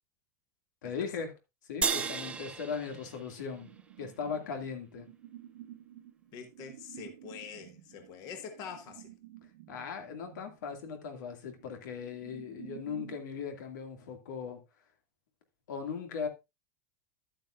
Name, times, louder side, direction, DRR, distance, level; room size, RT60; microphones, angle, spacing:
voice 1, 0.8-1.3 1.6-3.7 4.0-5.1 9.7-14.6 15.7-16.3, left 6 dB, 90° left, 2.3 m, -38 dB
sound 1, 1.8-4.4, right 6 dB, 10° right, 0.6 m, -35 dB
sound 2, 1.8-13.2, right 13 dB, 85° right, 1.5 m, -52 dB
voice 2, 6.3-9.1, left 7 dB, 40° left, 1.6 m, -45 dB
11.5 x 8.8 x 2.5 m
supercardioid pair, 150°, 10 cm